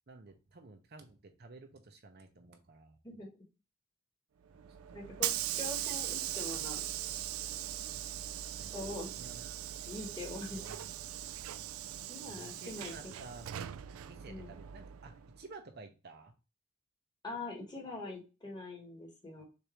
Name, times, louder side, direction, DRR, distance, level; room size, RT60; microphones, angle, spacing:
voice 1, 0.1-3.0 7.9-8.1 8.5-9.6 10.6-11.0 11.4-11.5 12.3-13.6 14.0-16.3, right 3 dB, 50° right, 5 dB, 0.6 m, -53 dB
Hiss / Sliding door, 4.5-15.4, right 12 dB, 75° right, 0.3 m, -40 dB
voice 2, 4.9-6.8 8.7-9.1 9.8-10.6 12.1-13.1 14.2-14.5 17.2-19.4, left 2 dB, 20° left, 0 dB, 1.3 m, -43 dB
6.6 x 2.6 x 3.0 m, 0.30 s
head